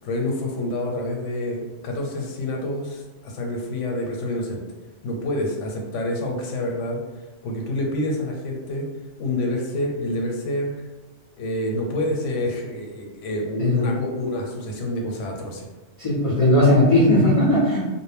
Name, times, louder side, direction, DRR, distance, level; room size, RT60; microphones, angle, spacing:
voice 1, 0.0-4.6 5.0-7.0 7.4-8.9 9.2-10.7 11.4-15.7, left 1 dB, 90° left, 1 dB, 0.9 m, -27 dB
voice 2, 13.6-14.0 16.0-17.8, left 1 dB, 50° left, -6 dB, 0.4 m, -17 dB
2.1 x 2.0 x 3.3 m, 1.2 s
omnidirectional pair, 1.2 m